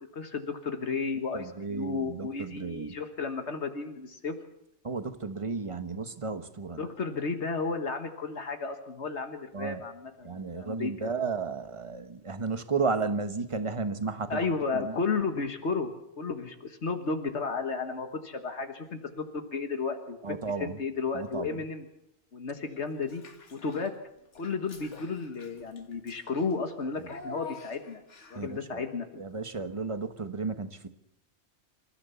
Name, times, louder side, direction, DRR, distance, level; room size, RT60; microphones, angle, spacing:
voice 1, 0.1-4.3 6.8-11.1 14.3-15.9 16.2-21.8 22.3-23.2 23.5-23.9 24.3-28.0 28.3-29.2, left 4 dB, 75° left, 6 dB, 1.7 m, -33 dB
voice 2, 1.3-2.9 4.8-6.8 9.5-9.8 10.2-14.4 14.7-15.0 20.2-20.8 21.1-21.6 28.3-28.8 29.2-30.9, right 4 dB, 30° right, 9 dB, 1.2 m, -33 dB
Child speech kid speaking / Bathtub (filling or washing), 23.0-24.0 24.3-28.6, left 3 dB, 90° left, 2.1 m, -48 dB
27.0 x 14.5 x 7.0 m, 0.82 s
omnidirectional pair, 1.2 m